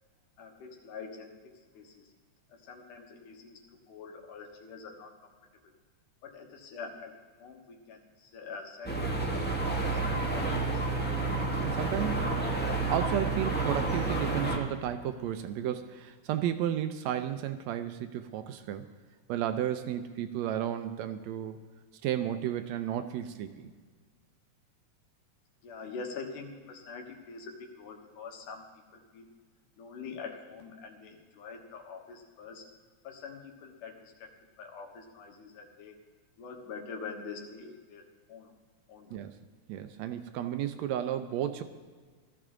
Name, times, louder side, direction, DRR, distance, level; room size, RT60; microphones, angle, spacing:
voice 1, 0.4-1.3 1.7-2.1 2.5-3.6 3.9-5.3 6.2-7.1 7.4-10.5 25.6-28.7 28.9-29.3 29.8-32.6 33.0-34.3 34.6-36.0 36.4-38.0 38.3-38.5 38.9-39.3, left 5 dB, 85° left, 2 dB, 2.9 m, -45 dB
sound 1, 8.8-14.6, right 3 dB, 15° left, 0.4 m, -30 dB
voice 2, 11.3-12.4 12.9-18.9 19.3-21.6 22.0-23.7 39.1-39.3 39.7-41.6, right 10 dB, 80° right, 9 dB, 1.7 m, -33 dB
15.5 x 13.5 x 3.7 m, 1.5 s
omnidirectional pair, 3.5 m